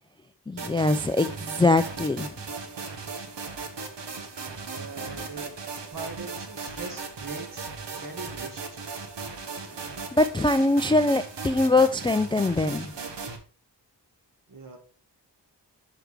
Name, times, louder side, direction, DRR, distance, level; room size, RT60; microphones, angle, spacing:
voice 1, 0.5-2.3 10.1-12.9, left 2 dB, 15° left, 0.3 m, -22 dB
sound 1, 0.6-13.4, right 4 dB, 90° right, 1.1 m, -37 dB
voice 2, 4.7-5.5 5.9-8.8 14.5-14.8, right 3 dB, 50° right, 1.8 m, -41 dB
6.5 x 4.6 x 4.7 m
wide cardioid pair, 65°, 42 cm